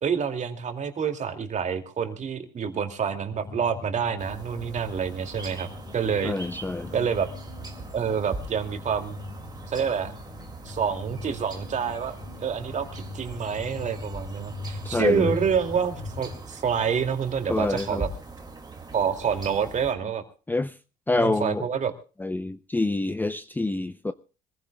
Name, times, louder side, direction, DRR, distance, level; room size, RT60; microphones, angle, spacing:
voice 1, 0.0-6.4 6.9-7.3 7.9-9.2 9.7-10.2 10.6-18.1 18.9-20.2 21.2-21.9, right 7 dB, 40° right, 2.5 m, -27 dB
sound 1, 3.3-16.4, left 2 dB, 50° left, 1.7 m, -40 dB
sound 2, 4.2-19.9, right 3 dB, 20° right, 2.3 m, -41 dB
voice 2, 6.2-6.9 14.9-15.3 17.5-18.0 20.5-20.7 21.1-21.7 22.2-24.1, left 2 dB, 10° left, 0.6 m, -26 dB
25.5 x 15.0 x 2.3 m
cardioid pair, 100°, 18 cm